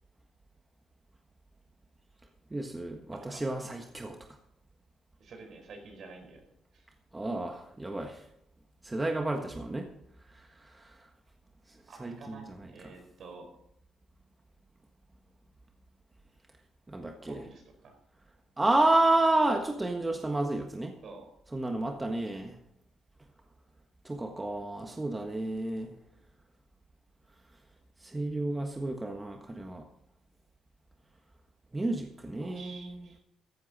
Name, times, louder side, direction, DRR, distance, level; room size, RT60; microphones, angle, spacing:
voice 1, 2.5-4.2 7.1-8.2 8.8-9.9 10.7-10.9 12.0-12.3 16.9-17.4 18.6-20.9 21.5-22.5 24.0-25.9 28.0-29.8 31.7-33.0, right 2 dB, 15° right, 3 dB, 1.5 m, -30 dB
voice 2, 3.1-3.5 5.2-6.5 6.7-6.9 11.9-13.5 17.2-18.0 21.0-21.3 32.4-33.2, right 4 dB, 60° right, 4 dB, 4.6 m, -49 dB
14.5 x 12.0 x 4.2 m, 0.75 s
cardioid pair, 90°, 0 cm